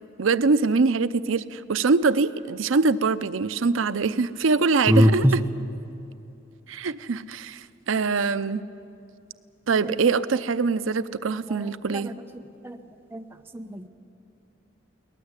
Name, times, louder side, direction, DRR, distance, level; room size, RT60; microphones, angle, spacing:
voice 1, 0.2-5.4 6.7-8.6 9.7-12.1, right 4 dB, 85° right, 13 dB, 0.6 m, -23 dB
voice 2, 13.5-13.9, left 1 dB, 10° right, 4 dB, 1.0 m, -21 dB
22.5 x 19.0 x 8.2 m, 2.8 s
head